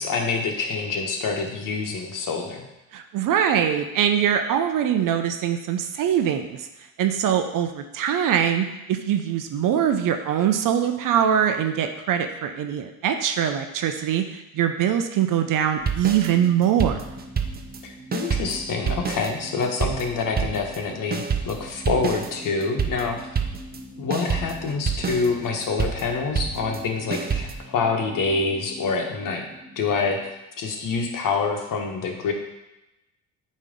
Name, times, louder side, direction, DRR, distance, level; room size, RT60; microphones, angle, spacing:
voice 1, 0.0-2.6 17.8-23.2 24.0-29.4 29.8-32.3, left 4 dB, 55° left, 3 dB, 1.4 m, -26 dB
voice 2, 2.9-6.7 7.0-17.0, right 9 dB, 55° right, 7 dB, 0.7 m, -23 dB
sound 1, 15.8-17.9 18.1-23.8 24.1-27.6, right 6 dB, 25° right, 0.7 m, -28 dB
sound 2, 16.1-30.3, equal, 70° right, 1.4 m, -45 dB
8.2 x 3.2 x 5.3 m, 0.96 s
supercardioid pair, 80°, 39 cm